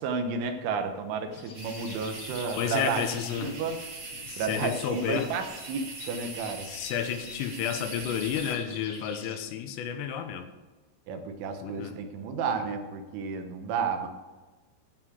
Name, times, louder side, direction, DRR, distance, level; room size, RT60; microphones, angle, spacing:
voice 1, 0.0-3.0 3.4-3.8 4.4-6.7 11.1-14.1, right 5 dB, 75° right, 6 dB, 3.4 m, -32 dB
sound 1, 1.3-9.4, left 4 dB, 55° left, 2.4 m, -48 dB
sound 2, 1.5-8.5, right 3 dB, 45° right, 2.8 m, -42 dB
voice 2, 2.6-3.6 4.1-5.3 6.6-10.5 11.6-11.9, left 8 dB, 85° left, 7 dB, 3.7 m, -31 dB
16.0 x 6.2 x 6.1 m, 1.2 s
omnidirectional pair, 5.7 m